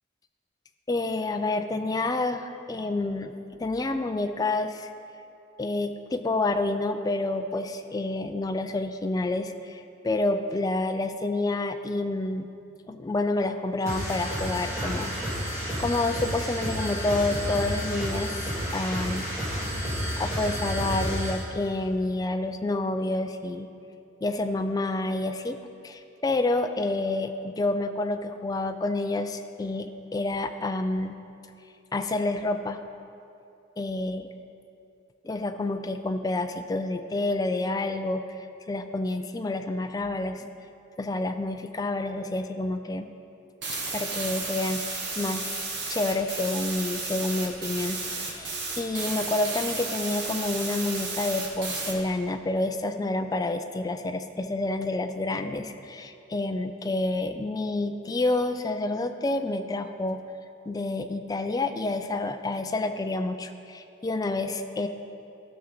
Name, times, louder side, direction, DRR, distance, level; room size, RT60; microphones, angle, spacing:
voice 1, 0.9-3.3 3.6-4.9 5.6-12.5 12.9-15.1 15.8-19.3 19.7-23.7 24.2-25.6 25.8-31.2 31.9-32.8 33.8-34.3 35.2-38.4 38.7-40.5 41.0-43.1 43.9-45.6 45.9-60.2 60.7-64.9, left 2 dB, 20° left, 7 dB, 0.3 m, -29 dB
sound 1, 13.8-21.4, equal, 15° right, 1.9 m, -31 dB
sound 2, 43.6-51.9, right 3 dB, 60° right, 1.4 m, -33 dB
14.0 x 5.8 x 3.9 m, 2.6 s
head